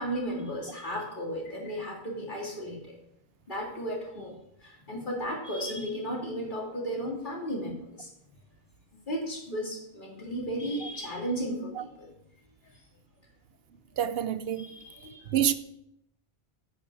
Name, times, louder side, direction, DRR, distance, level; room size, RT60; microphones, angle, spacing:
voice 1, 0.0-2.9 3.5-4.3 4.6-8.1 9.1-12.1 14.6-15.3, equal, 50° left, 2.9 m, -34 dB
voice 2, 14.0-14.7 15.3-15.5, right 10 dB, 75° right, 0.8 m, -26 dB
8.8 x 8.7 x 4.8 m
omnidirectional pair, 1.1 m